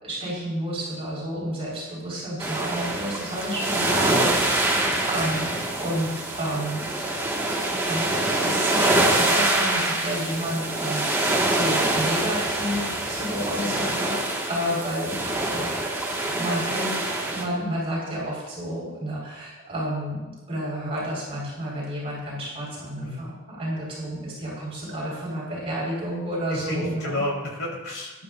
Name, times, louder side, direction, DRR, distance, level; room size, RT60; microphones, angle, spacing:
voice 1, 0.0-6.9 7.8-14.2 14.5-15.8 16.2-27.2, equal, 25° right, -6 dB, 4.8 m, -31 dB
sound 1, 2.4-17.4, right 1 dB, 10° right, 1.7 m, -25 dB
voice 2, 26.5-28.2, left 1 dB, 60° left, -2 dB, 4.0 m, -31 dB
19.0 x 11.5 x 2.6 m, 1.2 s
head